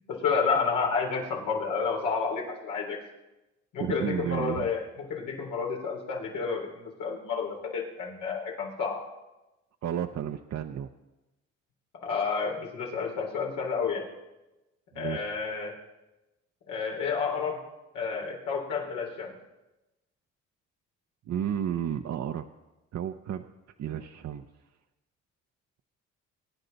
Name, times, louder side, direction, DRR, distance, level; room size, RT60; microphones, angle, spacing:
voice 1, 0.0-3.0 3.7-9.0 12.0-14.1 15.0-15.7 16.7-17.6 17.9-19.3, left 5 dB, 90° left, -2 dB, 3.7 m, -30 dB
voice 2, 3.8-4.7 9.8-10.9 15.0-15.3 21.3-22.4 22.9-23.4 23.8-24.4, right 9 dB, 60° right, 6 dB, 0.7 m, -32 dB
23.0 x 9.7 x 4.0 m, 1.0 s
cardioid pair, 90°, 30 cm